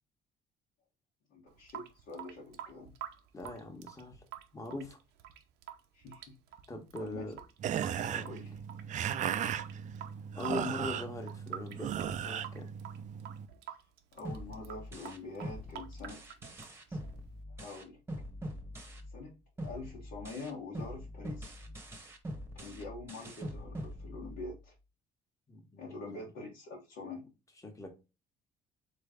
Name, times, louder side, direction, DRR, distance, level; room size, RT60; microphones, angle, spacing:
voice 1, 1.3-2.9 5.9-6.3 7.0-7.2 8.2-8.5 13.7-13.8 14.1-16.2 16.9-17.0 17.5-18.0 19.1-19.3 19.6-21.5 22.5-24.7 25.8-27.2, left 3 dB, 75° left, -5 dB, 1.5 m, -45 dB
Water tap faucet / Sink (filling or washing) / Drip, 1.5-17.4, right 11 dB, 85° right, 0.7 m, -49 dB
voice 2, 3.3-4.2 4.5-5.0 6.7-7.3 7.9-8.3 10.3-12.7 25.5-26.3 27.6-27.9, left 2 dB, 20° left, 3 dB, 1.3 m, -41 dB
sound 1, 7.6-13.5, right 9 dB, 45° right, 0.4 m, -36 dB
sound 2, 14.2-19.3 19.6-24.6, equal, 15° right, 1.0 m, -43 dB
4.0 x 3.2 x 3.6 m, 0.27 s
cardioid pair, 110°, 17 cm